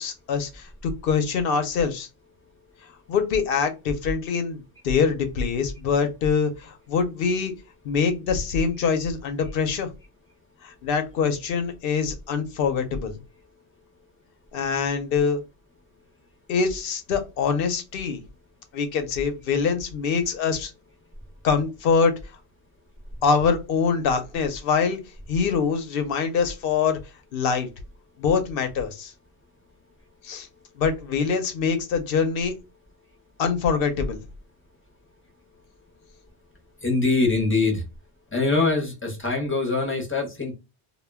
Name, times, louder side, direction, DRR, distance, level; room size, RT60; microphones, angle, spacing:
voice 1, 0.0-2.1 3.1-7.5 7.8-9.9 10.6-13.1 14.5-15.4 16.5-18.2 18.7-20.7 21.4-22.1 23.2-25.0 25.3-27.0 27.3-27.7 28.2-29.1 30.2-30.5 30.8-32.5 33.4-34.2, left 5 dB, 60° left, 0.7 m, -24 dB
voice 2, 36.8-37.8 38.3-40.5, left 3 dB, 15° left, 0.5 m, -23 dB
2.2 x 2.1 x 3.2 m
omnidirectional pair, 1.1 m